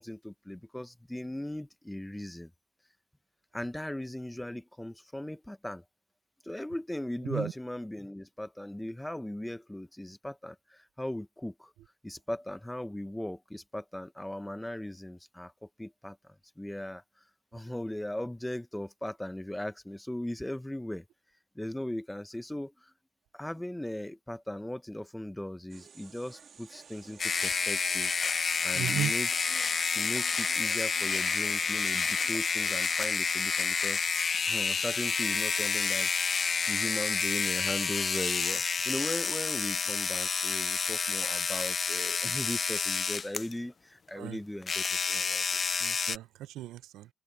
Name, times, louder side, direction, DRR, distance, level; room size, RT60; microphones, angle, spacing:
voice 1, 0.0-2.5 3.5-5.8 6.4-11.7 12.0-17.0 17.5-21.0 21.5-22.9 23.3-28.1 28.4-34.0 34.4-45.4, left 1 dB, 5° left, 1.0 m, -38 dB
sound 1, 25.7-32.8, right 6 dB, 50° right, 1.8 m, -54 dB
sound 2, 27.2-43.5 44.6-46.2, left 5 dB, 40° left, 0.5 m, -29 dB
voice 2, 28.7-29.1 44.1-44.4 45.8-47.1, right 13 dB, 90° right, 0.6 m, -35 dB
open air
cardioid pair, 90°, 0 cm